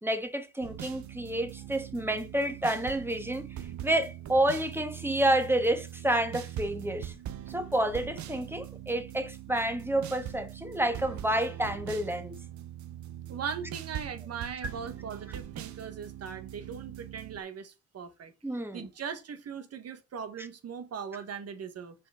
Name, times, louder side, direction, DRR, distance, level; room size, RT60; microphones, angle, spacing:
voice 1, 0.0-3.5 3.8-7.1 7.5-12.4 18.4-18.9, right 1 dB, 5° right, 1.4 m, -29 dB
sound 1, 0.6-17.4, right 12 dB, 70° right, 1.0 m, -42 dB
voice 2, 13.3-18.3 18.7-22.1, right 7 dB, 55° right, 1.4 m, -39 dB
6.2 x 4.4 x 4.8 m
cardioid pair, 90°, 30 cm